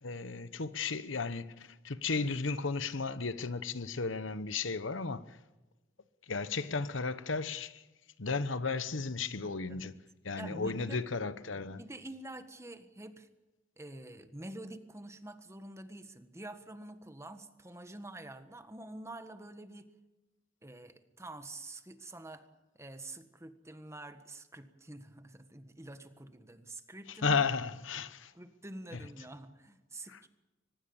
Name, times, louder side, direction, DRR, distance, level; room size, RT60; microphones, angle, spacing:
voice 1, 0.0-5.4 6.3-7.8 8.2-10.0 10.2-11.8 27.1-28.3 28.9-29.0 30.1-30.2, left 4 dB, 75° left, 1.0 m, -34 dB
voice 2, 10.4-11.0 11.8-13.3 13.8-19.9 20.6-22.5 22.7-27.4 28.3-30.3, right 1 dB, 15° right, 1.6 m, -47 dB
24.0 x 20.5 x 7.2 m
head